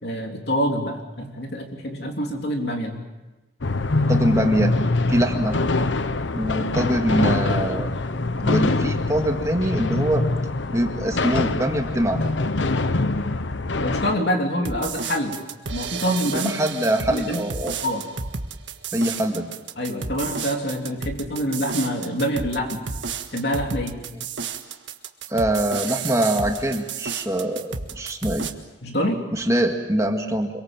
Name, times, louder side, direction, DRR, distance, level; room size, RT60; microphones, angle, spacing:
voice 1, 0.0-3.0 13.8-15.3 15.7-16.5 17.1-17.5 17.8-18.0 19.8-22.8 23.3-24.0 28.8-29.2, equal, 55° left, 2 dB, 3.5 m, -26 dB
sound 1, 3.6-14.2, left 2 dB, 70° left, 0.9 m, -24 dB
voice 2, 4.1-4.7 5.1-5.6 6.3-7.9 8.4-10.2 10.7-12.2 16.3-17.8 18.9-19.5 25.3-28.5 29.3-30.5, right 1 dB, 15° right, 3 dB, 2.1 m, -23 dB
sound 2, 14.6-28.5, right 5 dB, 70° right, 1.7 m, -32 dB
26.0 x 23.5 x 7.5 m, 1.1 s
head